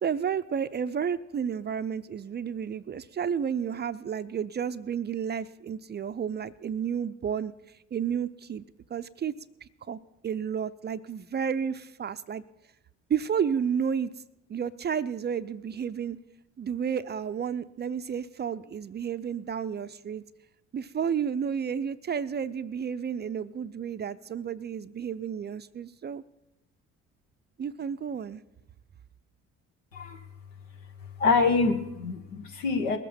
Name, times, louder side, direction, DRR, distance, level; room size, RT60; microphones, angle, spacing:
voice 1, 0.0-8.6 8.9-9.3 9.6-12.4 13.1-14.1 14.5-16.2 16.6-20.2 20.7-26.2 27.6-28.4, right 7 dB, 25° right, 13 dB, 0.5 m, -31 dB
voice 2, 29.9-30.2 31.2-33.0, left 4 dB, 80° left, 5 dB, 1.3 m, -25 dB
20.0 x 8.3 x 5.6 m, 0.92 s
figure-of-eight pair, 50°, 38 cm